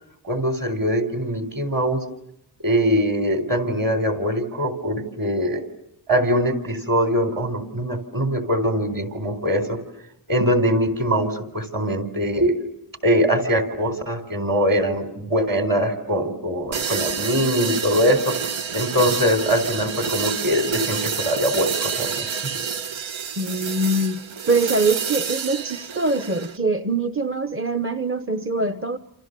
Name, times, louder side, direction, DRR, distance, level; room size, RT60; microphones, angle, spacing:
voice 1, 0.2-2.0 2.6-5.6 6.1-9.8 10.3-12.5 13.0-18.3 18.7-22.5, equal, 45° right, 8 dB, 4.2 m, -22 dB
Sounds For Earthquakes - Shaking Hi-Hats, 16.7-26.6, right 6 dB, 80° right, 1.2 m, -28 dB
voice 2, 23.4-29.0, right 2 dB, 25° right, 9 dB, 0.9 m, -23 dB
29.0 x 28.5 x 6.8 m, 0.82 s
wide cardioid pair, 130°, 46 cm